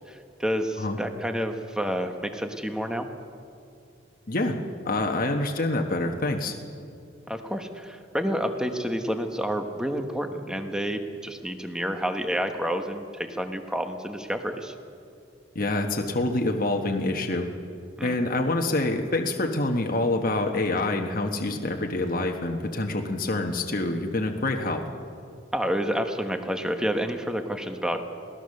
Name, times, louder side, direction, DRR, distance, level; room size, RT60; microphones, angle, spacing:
voice 1, 0.0-3.1 7.3-14.7 18.0-18.2 25.5-28.0, equal, 5° right, 6 dB, 1.2 m, -29 dB
voice 2, 4.8-6.6 15.5-17.5 18.0-24.8, left 2 dB, 45° left, 3 dB, 1.3 m, -26 dB
22.0 x 18.0 x 6.6 m, 2.5 s
head